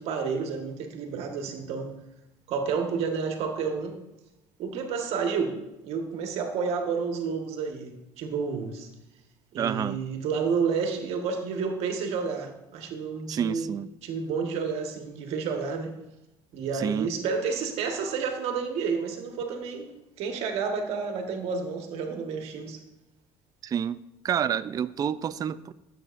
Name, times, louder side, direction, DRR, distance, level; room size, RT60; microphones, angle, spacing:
voice 1, 0.0-1.9 2.5-4.0 4.6-5.5 5.8-8.9 9.5-13.7 14.0-15.9 16.5-19.9 20.2-22.8, right 5 dB, 70° right, 4 dB, 1.5 m, -30 dB
voice 2, 9.6-10.0 13.3-13.9 16.7-17.1 23.6-24.0 24.2-25.7, right 8 dB, 35° right, 13 dB, 0.4 m, -28 dB
15.0 x 7.9 x 2.6 m, 0.96 s
supercardioid pair, 90°, 11 cm